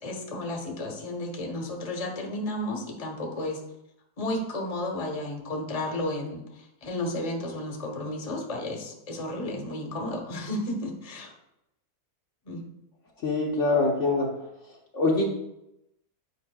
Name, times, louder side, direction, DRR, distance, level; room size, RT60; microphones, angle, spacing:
voice 1, 0.0-3.6 4.2-11.3 12.5-12.7, left 1 dB, 30° left, 1 dB, 0.9 m, -33 dB
voice 2, 13.2-14.5 14.9-15.2, left 3 dB, 60° left, -1 dB, 1.0 m, -24 dB
8.4 x 5.1 x 2.2 m, 0.85 s
omnidirectional pair, 1.7 m